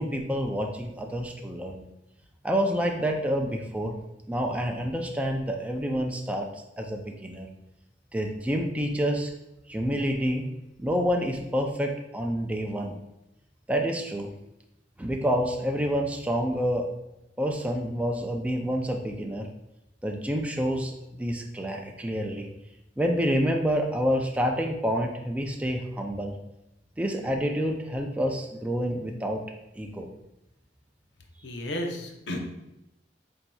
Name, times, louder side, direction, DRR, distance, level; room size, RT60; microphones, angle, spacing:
voice 1, 0.0-1.8 2.4-3.9 4.3-6.5 6.8-7.5 8.1-9.3 9.7-10.5 10.8-13.0 13.7-14.3 15.0-16.9 17.4-19.5 20.0-22.5 23.0-26.4 27.0-29.4 29.8-30.1, equal, 10° right, 1 dB, 0.4 m, -28 dB
voice 2, 31.4-32.4, left 1 dB, 75° left, 3 dB, 0.7 m, -33 dB
7.2 x 2.7 x 2.3 m, 0.91 s
head